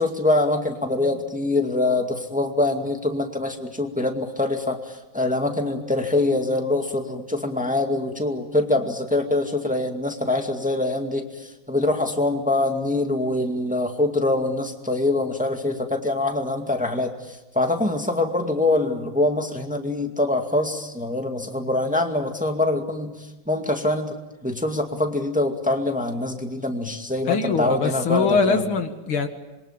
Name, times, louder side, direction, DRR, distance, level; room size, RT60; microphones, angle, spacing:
voice 1, 0.0-24.2 24.4-28.6, left 2 dB, 5° right, 4 dB, 1.9 m, -24 dB
voice 2, 27.3-29.3, left 5 dB, 90° left, 7 dB, 2.8 m, -22 dB
26.5 x 23.0 x 8.9 m, 1.1 s
omnidirectional pair, 2.2 m